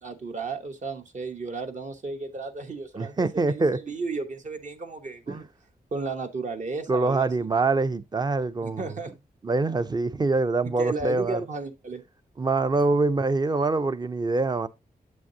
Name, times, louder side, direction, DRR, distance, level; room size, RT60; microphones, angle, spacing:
voice 1, 0.0-5.5 5.9-7.5 8.6-9.1 10.6-12.0, right 3 dB, 55° right, 1.0 m, -34 dB
voice 2, 3.0-3.8 5.3-5.4 6.9-8.9 9.4-11.4 12.4-14.7, right 3 dB, 25° right, 0.5 m, -24 dB
8.0 x 6.2 x 2.7 m
wide cardioid pair, 95°, 15 cm